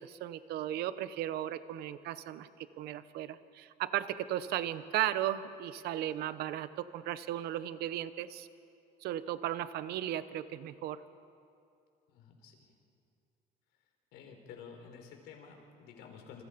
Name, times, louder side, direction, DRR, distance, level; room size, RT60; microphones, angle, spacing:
voice 1, 0.0-2.5 2.8-8.5 9.0-11.0, right 12 dB, 70° right, 13 dB, 1.0 m, -36 dB
voice 2, 12.1-12.7 14.1-16.4, left 6 dB, 85° left, 3 dB, 4.7 m, -51 dB
29.0 x 27.5 x 5.3 m, 2.6 s
cardioid pair, 160°, 17 cm